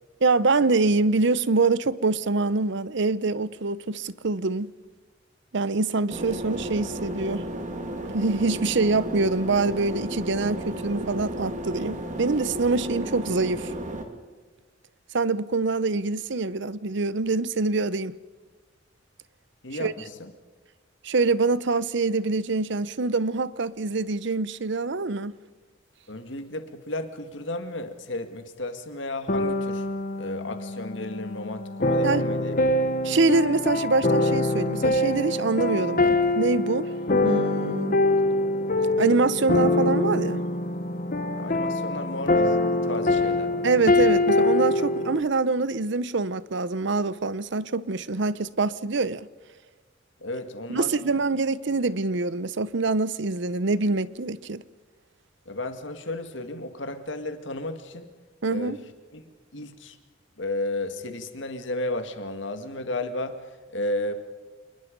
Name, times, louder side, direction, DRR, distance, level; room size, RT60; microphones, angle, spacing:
voice 1, 0.2-4.7 5.5-7.5 8.1-13.7 15.1-18.2 19.8-19.9 21.0-25.3 32.0-32.3 33.0-38.0 39.0-40.4 43.6-49.3 50.7-54.6 58.4-58.8, right 3 dB, 65° right, 0.7 m, -25 dB
sound 1, 6.1-14.0, right 1 dB, 40° right, 2.1 m, -33 dB
voice 2, 26.1-29.9 30.2-32.6 41.3-42.6 42.8-43.7 50.2-51.0 55.5-58.1 58.5-58.8 59.1-59.2 59.5-60.0 60.4-63.4 63.7-64.1, left 2 dB, 70° left, 2.0 m, -33 dB
sound 2, 29.3-45.2, left 2 dB, 45° left, 1.2 m, -24 dB
27.5 x 20.5 x 5.3 m
head